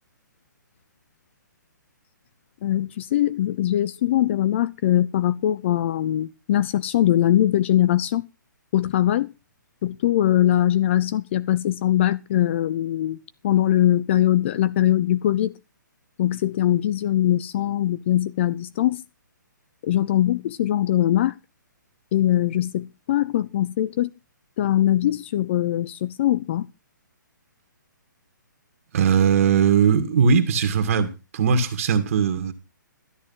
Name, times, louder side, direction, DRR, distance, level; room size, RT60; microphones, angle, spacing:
voice 1, 2.6-8.3 8.7-9.3 9.8-13.2 13.4-15.6 16.2-19.0 19.8-21.3 22.1-24.1 24.6-26.7, left 12 dB, 35° left, 0.7 m, -21 dB
voice 2, 28.9-32.5, right 6 dB, 45° right, 2.1 m, -19 dB
13.5 x 9.8 x 5.7 m
hypercardioid pair, 155°, 11 cm